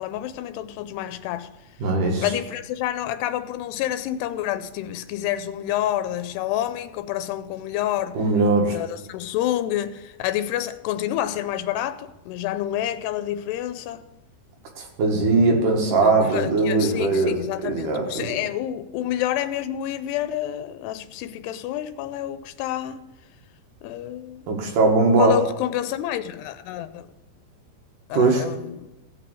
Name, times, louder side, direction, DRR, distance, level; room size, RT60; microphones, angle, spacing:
voice 1, 0.0-1.5 2.2-8.2 8.7-14.0 16.0-23.0 23.8-24.4 25.2-27.1 28.1-28.9, left 12 dB, 90° left, 2.7 m, -28 dB
voice 2, 1.8-2.2 8.1-8.8 14.8-18.3 24.5-25.4 28.1-28.4, right 3 dB, 60° right, 2.7 m, -20 dB
16.0 x 6.0 x 6.3 m
omnidirectional pair, 4.7 m